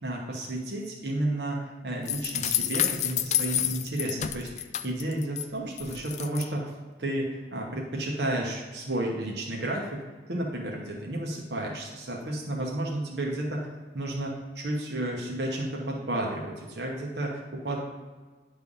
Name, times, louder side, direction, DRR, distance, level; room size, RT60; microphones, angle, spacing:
voice 1, 0.0-6.7 7.0-10.0 10.3-13.7 13.9-17.8, right 1 dB, 70° right, -1 dB, 1.0 m, -32 dB
sound 1, 2.1-5.4 5.8-6.5, left 11 dB, 40° left, 0.3 m, -29 dB
9.8 x 3.4 x 5.4 m, 1.4 s
head